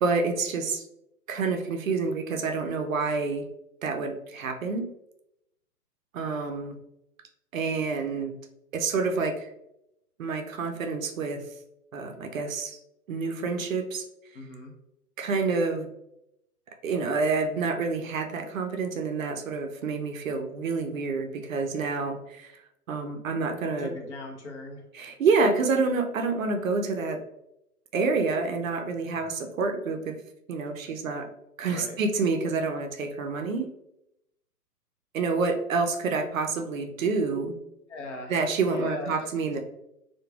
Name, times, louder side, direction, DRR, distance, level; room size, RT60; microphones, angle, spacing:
voice 1, 0.0-0.9 1.3-3.5 3.8-4.9 6.1-6.8 7.5-8.3 8.7-9.5 10.2-11.4 11.9-12.8 13.1-14.0 15.2-15.9 16.8-22.5 22.9-23.9 24.9-27.2 27.9-30.2 30.5-31.3 31.6-33.7 35.1-37.6 38.3-39.6, right 4 dB, 60° right, 5 dB, 0.5 m, -28 dB
voice 2, 14.3-14.7 23.8-24.8 30.9-31.0 31.7-32.0 37.9-38.3 38.7-39.3, left 3 dB, 45° left, 2 dB, 0.7 m, -39 dB
3.0 x 2.2 x 2.3 m, 0.82 s
figure-of-eight pair, 120°, 47 cm